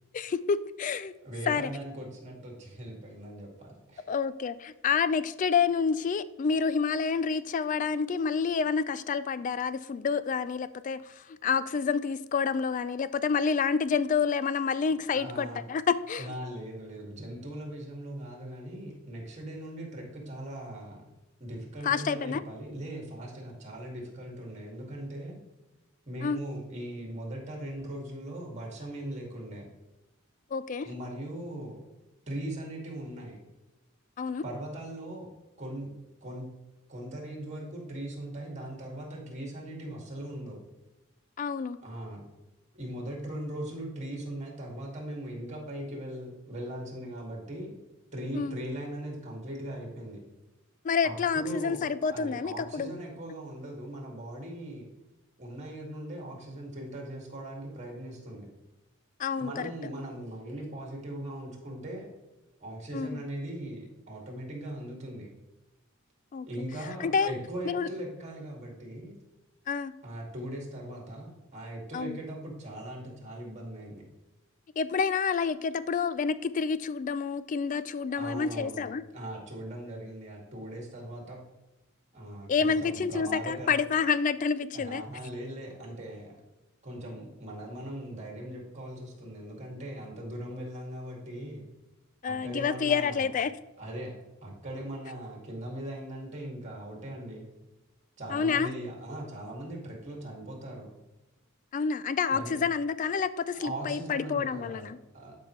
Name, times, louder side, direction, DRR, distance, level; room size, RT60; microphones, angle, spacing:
voice 1, 0.1-1.1 1.5-1.7 4.1-16.3 21.8-22.4 26.2-26.4 30.5-30.9 34.2-34.4 41.4-41.8 48.3-48.6 50.8-52.9 59.2-59.5 62.9-63.2 66.3-66.5 67.0-67.4 67.6-67.9 69.7-69.9 71.9-72.2 74.8-79.0 82.5-85.0 92.2-93.5 98.3-98.7 101.7-105.0, left 6 dB, 35° left, 15 dB, 0.3 m, -28 dB
voice 2, 1.2-4.0 15.1-15.6 16.2-21.1 21.4-25.4 26.1-29.7 30.8-31.8 32.3-33.3 34.4-35.3 35.6-35.9 36.2-36.5 36.9-40.6 41.8-42.3 42.7-47.8 48.1-50.2 51.0-54.9 55.4-58.5 59.4-62.1 62.6-65.3 66.4-69.1 70.0-74.0 78.1-78.8 79.1-81.4 82.1-83.8 84.7-86.4 86.8-91.7 92.2-93.3 93.8-94.1 94.4-97.5 98.2-100.9 102.3-102.6 103.5-105.4, right 1 dB, 35° right, 0 dB, 2.2 m, -39 dB
11.5 x 5.2 x 3.1 m, 1.0 s
head